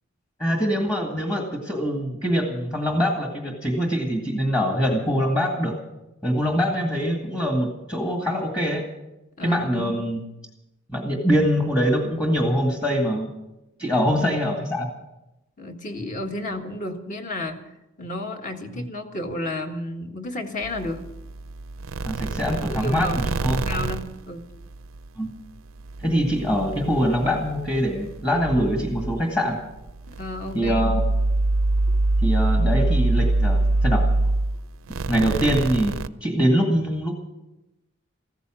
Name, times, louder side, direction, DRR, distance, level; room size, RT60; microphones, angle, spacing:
voice 1, 0.4-5.8 6.2-8.8 9.4-10.2 10.9-13.3 13.8-14.9 18.8-18.9 22.0-23.8 25.2-25.3 26.0-29.6 30.5-31.0 32.2-34.1 35.1-37.1, equal, 20° left, 1 dB, 1.9 m, -23 dB
voice 2, 9.4-10.0 13.9-14.3 15.6-17.6 18.0-21.0 22.7-24.4 30.1-31.0, left 1 dB, 40° left, 4 dB, 1.6 m, -32 dB
sound 1, 20.6-25.1 25.4-36.1, right 2 dB, 85° right, 0.6 m, -25 dB
15.0 x 14.0 x 6.2 m, 0.94 s
head